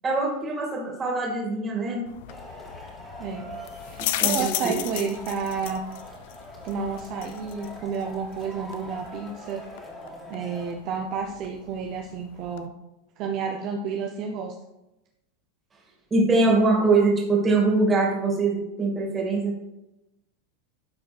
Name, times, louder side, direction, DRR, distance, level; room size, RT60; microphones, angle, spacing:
voice 1, 0.0-2.0 4.2-4.7 16.1-19.6, right 3 dB, 20° right, -2 dB, 2.5 m, -23 dB
sound 1, 2.1-12.7, left 13 dB, 70° left, 0.5 m, -36 dB
Male speech man speaking / Shout / Clapping, 2.3-10.7, equal, 10° left, 2.3 m, -43 dB
voice 2, 3.8-5.8 6.6-9.6 10.3-12.7 13.2-14.5, right 5 dB, 50° right, 2 dB, 0.8 m, -31 dB
12.5 x 4.2 x 3.5 m, 0.95 s
supercardioid pair, 125°, 0 cm